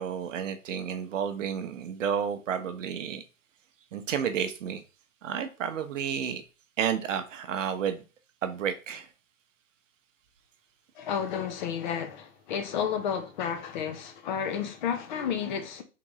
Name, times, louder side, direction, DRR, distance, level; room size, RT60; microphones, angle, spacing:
voice 1, 0.0-3.2 3.9-4.8 5.2-6.4 6.8-8.0 8.4-9.1, right 8 dB, 60° right, 0.8 m, -31 dB
voice 2, 11.0-15.8, left 8 dB, 35° left, 0.6 m, -31 dB
3.8 x 3.5 x 3.0 m
hypercardioid pair, 125°, 42 cm